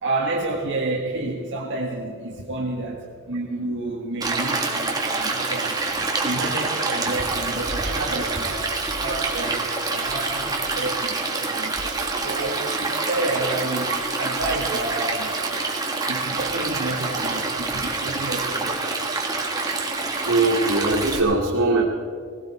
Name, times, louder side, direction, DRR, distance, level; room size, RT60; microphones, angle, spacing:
voice 1, 0.0-5.9 6.2-15.4 16.1-18.9, right 2 dB, 55° right, 0 dB, 1.4 m, -30 dB
Stream, 4.2-21.2, right 3 dB, 20° right, 1.7 m, -26 dB
voice 2, 20.2-21.8, right 2 dB, 80° right, -6 dB, 2.4 m, -20 dB
19.0 x 16.5 x 4.3 m, 2.1 s
head